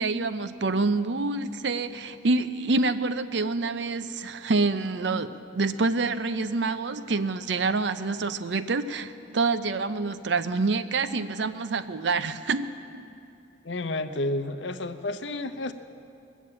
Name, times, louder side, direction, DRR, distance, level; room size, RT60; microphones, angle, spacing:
voice 1, 0.0-12.7, right 3 dB, 65° right, 11 dB, 0.6 m, -27 dB
voice 2, 13.6-15.7, left 2 dB, 65° left, 10 dB, 0.8 m, -30 dB
22.0 x 7.3 x 8.6 m, 2.8 s
head